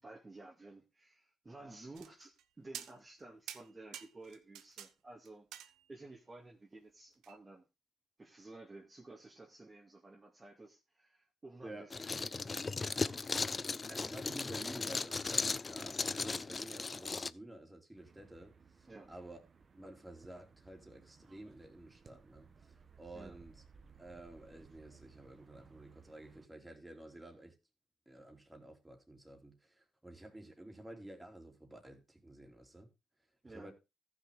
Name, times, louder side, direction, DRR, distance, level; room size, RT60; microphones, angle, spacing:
voice 1, 0.0-7.6 8.2-14.1 18.9-19.1 23.1-23.4 33.4-33.7, right 2 dB, 25° right, 2.1 m, -54 dB
sound 1, 2.0-2.4 2.7-3.2 3.5-4.9 5.3-6.1 7.2-7.4, right 10 dB, 80° right, 0.9 m, -49 dB
sound 2, 11.9-17.3, left 4 dB, 30° left, 0.4 m, -37 dB
voice 2, 14.0-19.4 19.7-22.7 23.0-23.6 24.0-27.5 28.1-32.9 33.4-33.7, right 1 dB, 10° right, 3.0 m, -51 dB
sound 3, 17.9-26.5, right 5 dB, 40° right, 1.3 m, -61 dB
14.0 x 6.2 x 3.7 m
cardioid pair, 80°, 0 cm